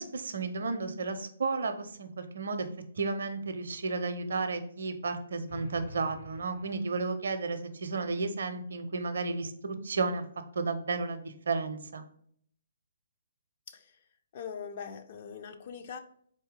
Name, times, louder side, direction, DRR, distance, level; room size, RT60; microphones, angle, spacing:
voice 1, 0.0-2.7 3.0-10.2 10.5-12.0, right 4 dB, 60° right, 9 dB, 0.5 m, -33 dB
sound 1, 5.5-7.5, equal, 90° left, 1.7 m, -48 dB
voice 2, 14.3-16.0, left 6 dB, 40° left, 7 dB, 0.4 m, -42 dB
4.2 x 2.7 x 3.5 m, 0.62 s
figure-of-eight pair, 130°, 0 cm